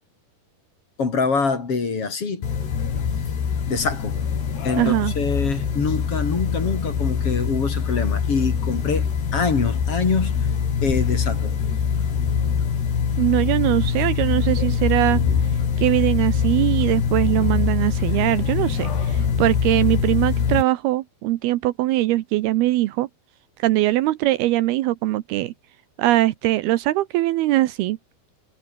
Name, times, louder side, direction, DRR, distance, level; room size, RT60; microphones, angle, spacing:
voice 1, 1.0-2.5 3.7-4.2 4.6-10.4 10.8-11.5, left 4 dB, 35° left, 4.2 m, -25 dB
sound 1, 2.4-20.6, left 7 dB, 90° left, 6.3 m, -23 dB
voice 2, 4.8-5.1 13.2-15.2 15.8-23.1 23.6-25.5 26.0-28.0, right 16 dB, 80° right, 2.8 m, -21 dB
omnidirectional pair, 4.6 m